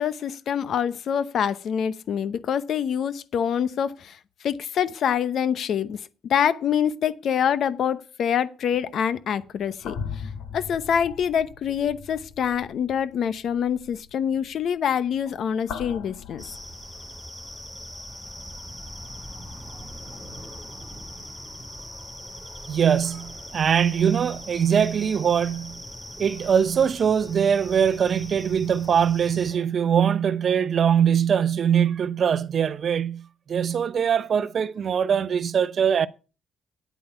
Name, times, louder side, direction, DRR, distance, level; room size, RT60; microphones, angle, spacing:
voice 1, 0.0-4.2 4.4-6.0 6.3-10.0 10.5-16.4, left 8 dB, 65° left, 0.9 m, -25 dB
sound 1, 9.1-17.4 18.0-18.2 20.1-20.2, left 6 dB, 80° left, 1.7 m, -40 dB
sound 2, 16.4-29.5, equal, 5° left, 2.6 m, -41 dB
voice 2, 22.7-25.8 26.2-33.2 33.5-36.1, right 8 dB, 55° right, 0.7 m, -22 dB
9.3 x 8.5 x 5.8 m
cardioid pair, 90°, 0 cm